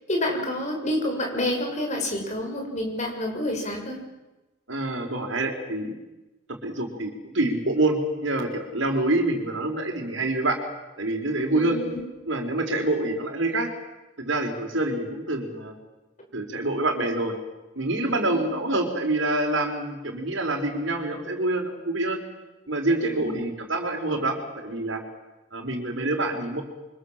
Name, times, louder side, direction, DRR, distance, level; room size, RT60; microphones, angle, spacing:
voice 1, 0.1-4.0 11.5-12.0 18.2-18.5 23.0-23.4, left 1 dB, 35° left, 1 dB, 7.0 m, -29 dB
voice 2, 4.7-5.9 6.6-10.6 11.0-11.8 12.3-13.7 14.2-15.7 16.3-17.4 17.7-22.2 22.7-25.0 25.5-26.6, right 2 dB, 65° right, 4 dB, 4.8 m, -26 dB
28.5 x 25.0 x 7.6 m, 1.0 s
head